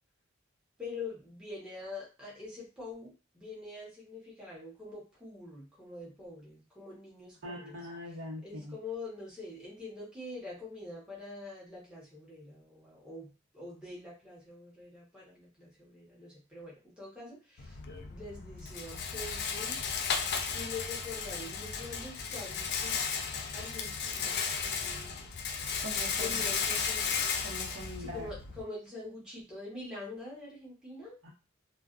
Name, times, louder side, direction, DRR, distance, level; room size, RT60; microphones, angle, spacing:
voice 1, 0.8-7.8 8.0-8.2 8.4-20.3 20.5-23.1 23.5-25.3 26.2-27.1 27.9-31.3, left 3 dB, 5° right, -6 dB, 0.9 m, -45 dB
voice 2, 7.4-8.7 25.8-26.4 27.4-28.3 31.2-31.3, equal, 65° right, -4 dB, 1.0 m, -42 dB
Rattle, 17.6-28.6, left 6 dB, 50° left, 0.4 m, -34 dB
2.4 x 2.3 x 2.4 m, 0.31 s
head